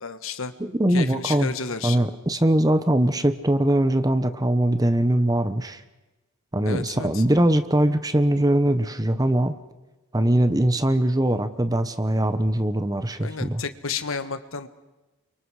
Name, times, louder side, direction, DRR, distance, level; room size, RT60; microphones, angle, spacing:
voice 1, 0.0-0.5 0.9-2.1 6.6-7.2 13.2-14.7, left 5 dB, 70° left, 10 dB, 1.4 m, -31 dB
voice 2, 0.6-1.5 1.8-5.8 6.5-9.5 10.1-13.6, right 1 dB, 15° right, 11 dB, 1.0 m, -21 dB
29.5 x 24.5 x 4.9 m, 1.1 s
head